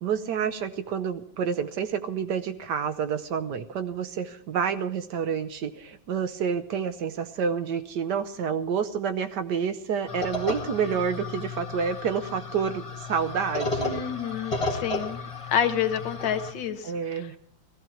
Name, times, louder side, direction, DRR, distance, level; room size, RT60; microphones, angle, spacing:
voice 1, 0.0-14.0 16.8-17.4, right 7 dB, 70° right, 10 dB, 1.3 m, -29 dB
sound 1, 10.1-16.5, left 3 dB, 15° left, 2.0 m, -33 dB
voice 2, 13.8-15.2 15.5-16.9, left 8 dB, 75° left, 7 dB, 1.6 m, -28 dB
16.0 x 15.0 x 4.5 m, 0.68 s
omnidirectional pair, 2.0 m